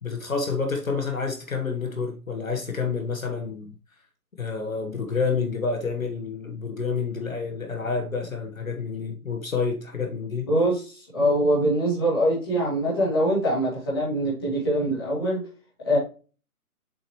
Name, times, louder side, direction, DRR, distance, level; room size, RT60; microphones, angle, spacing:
voice 1, 0.0-3.7 4.4-10.5, left 5 dB, 60° left, 1.5 m, -29 dB
voice 2, 10.5-15.4 15.8-16.0, equal, 15° left, 2.7 m, -23 dB
7.2 x 5.7 x 3.1 m
hypercardioid pair, 175°, 45 cm